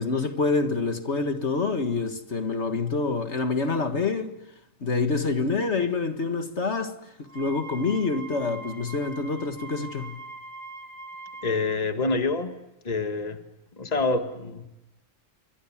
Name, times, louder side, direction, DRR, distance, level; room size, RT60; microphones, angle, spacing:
voice 1, 0.0-4.3 4.8-6.9 7.4-10.2, left 4 dB, 60° left, 2.0 m, -26 dB
Wind instrument woodwind instrument, 7.3-11.8, right 2 dB, 85° left, 4.5 m, -42 dB
voice 2, 11.4-12.6 12.8-13.4 13.8-14.7, left 3 dB, 30° left, 1.7 m, -26 dB
28.5 x 25.0 x 7.3 m
omnidirectional pair, 1.4 m